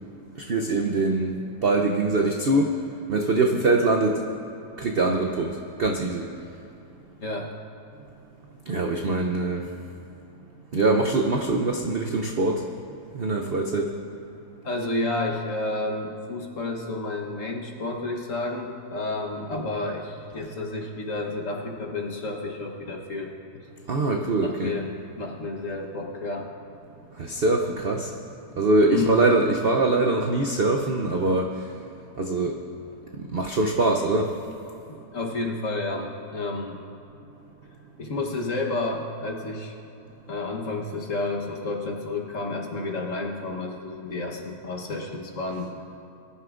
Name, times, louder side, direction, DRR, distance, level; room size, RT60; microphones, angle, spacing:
voice 1, 0.4-2.8 3.1-4.2 4.8-6.3 8.7-9.7 10.7-12.7 13.1-13.9 23.9-24.8 27.2-28.1 28.6-31.7 32.2-32.6 33.1-34.4, right 2 dB, 60° right, 2 dB, 0.6 m, -23 dB
voice 2, 7.2-7.5 14.6-23.6 24.4-24.9 25.2-26.5 28.9-29.2 34.9-36.8 38.0-39.7 40.3-45.7, left 2 dB, 50° left, 0 dB, 1.4 m, -31 dB
21.5 x 11.5 x 2.5 m, 2.8 s
omnidirectional pair, 1.8 m